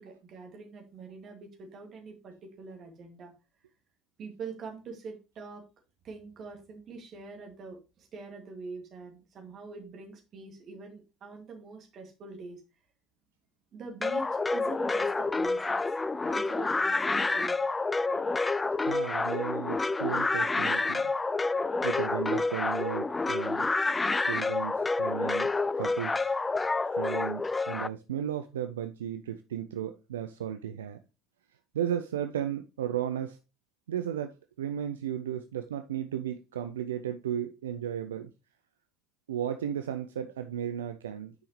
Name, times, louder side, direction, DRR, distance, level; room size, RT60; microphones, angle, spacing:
voice 1, 0.0-3.3 4.2-5.6 6.0-12.6 13.7-15.8 16.2-17.6, right 4 dB, 45° right, 2.3 m, -44 dB
sound 1, 14.0-27.9, left 3 dB, 20° left, 0.3 m, -28 dB
voice 2, 18.9-21.1 21.8-23.7 24.2-25.5 25.8-26.3 26.9-31.0 31.7-33.4 33.9-38.3 39.3-41.3, right 10 dB, 75° right, 0.4 m, -34 dB
9.3 x 5.5 x 3.1 m
figure-of-eight pair, 60°, 0 cm